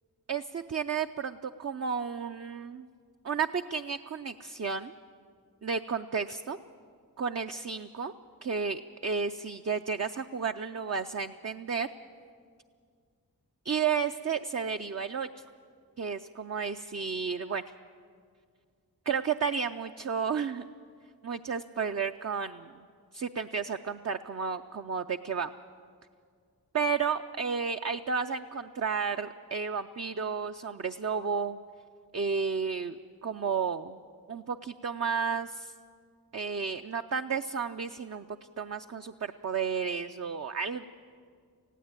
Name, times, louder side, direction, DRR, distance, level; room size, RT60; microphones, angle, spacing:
voice 1, 0.3-2.9 3.2-4.9 5.6-6.6 7.2-8.1 8.4-11.9 13.6-15.4 16.0-17.6 19.1-20.7 21.2-22.9 23.1-25.5 26.7-31.6 32.1-34.0 34.3-35.7 36.3-38.3 38.6-40.9, right 6 dB, 45° right, 6 dB, 0.5 m, -32 dB
19.5 x 15.5 x 8.9 m, 2.1 s
wide cardioid pair, 65°, 36 cm